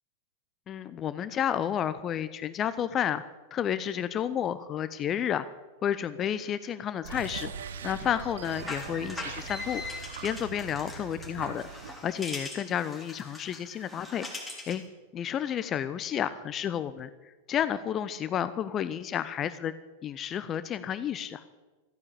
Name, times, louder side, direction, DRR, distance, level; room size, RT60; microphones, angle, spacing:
voice 1, 0.7-3.2 3.5-5.5 5.8-7.5 7.8-11.6 12.0-14.2 14.7-14.8 15.1-17.1 17.5-19.7 20.0-21.4, left 9 dB, 30° left, 14 dB, 0.6 m, -31 dB
sound 1, 7.0-12.0, right 7 dB, 60° right, 1.0 m, -41 dB
sound 2, 8.4-14.9, left 2 dB, ahead, 3.6 m, -41 dB
14.5 x 9.8 x 8.5 m, 1.2 s
figure-of-eight pair, 90°, 0 cm